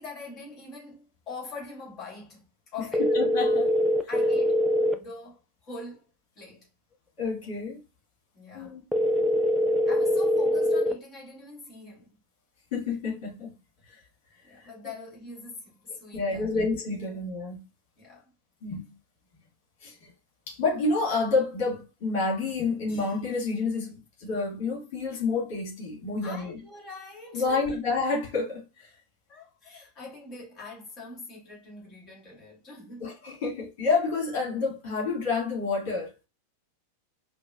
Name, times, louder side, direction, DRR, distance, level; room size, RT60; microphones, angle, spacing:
voice 1, 0.0-3.1 4.1-4.6 4.9-6.0 6.4-6.7 8.3-8.8 9.9-12.2 14.4-16.6 18.0-18.3 26.2-27.8 29.3-33.1, left 3 dB, 30° left, 2.0 m, -43 dB
sound 1, 2.9-4.9 8.9-10.9, equal, ahead, 0.4 m, -23 dB
voice 2, 3.1-3.7 7.2-7.8 8.5-8.8 12.7-13.5 16.1-17.6 18.6-18.9 19.8-20.1 20.5-23.9 24.2-26.6 27.3-28.9 33.0-36.1, left 3 dB, 45° left, 1.8 m, -29 dB
5.0 x 2.1 x 2.4 m
figure-of-eight pair, 90°, 0 cm